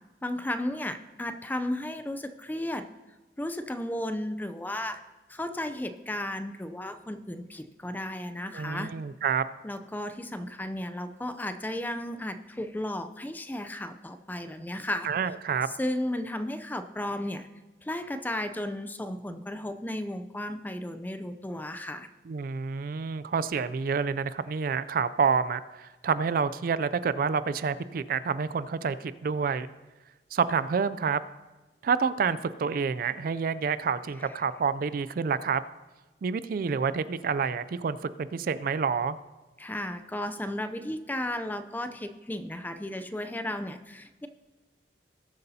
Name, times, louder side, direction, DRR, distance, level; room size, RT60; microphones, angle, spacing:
voice 1, 0.2-2.9 3.4-5.0 5.3-8.9 9.6-15.1 15.8-17.5 17.8-22.1 39.6-44.3, left 1 dB, 10° left, 9 dB, 0.4 m, -34 dB
voice 2, 8.5-9.5 15.0-15.7 22.3-29.7 30.3-31.2 31.8-35.6 36.2-39.2, right 5 dB, 55° right, 15 dB, 0.3 m, -28 dB
19.5 x 8.1 x 2.8 m, 1.1 s
head